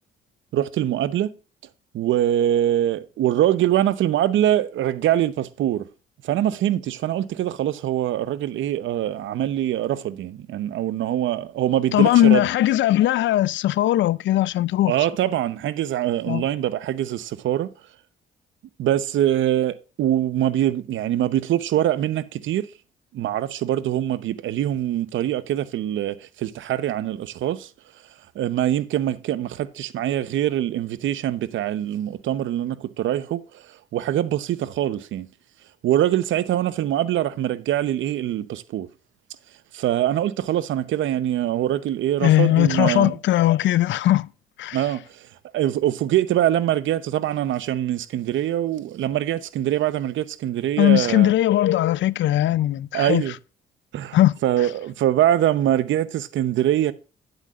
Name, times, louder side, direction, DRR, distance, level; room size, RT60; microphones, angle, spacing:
voice 1, 0.5-1.3 1.9-5.9 6.2-12.4 14.9-17.7 18.8-22.7 23.1-27.7 28.3-33.6 33.9-35.3 35.8-38.9 39.7-43.2 44.7-45.3 45.5-51.3 52.9-53.3 53.9-56.9, right 12 dB, 75° right, 0.8 m, -23 dB
voice 2, 11.9-14.9 16.3-16.5 42.2-44.3 44.6-44.8 50.8-53.2 54.1-54.3, left 14 dB, 70° left, 0.5 m, -19 dB
10.0 x 8.0 x 2.4 m
cardioid pair, 90°, 20 cm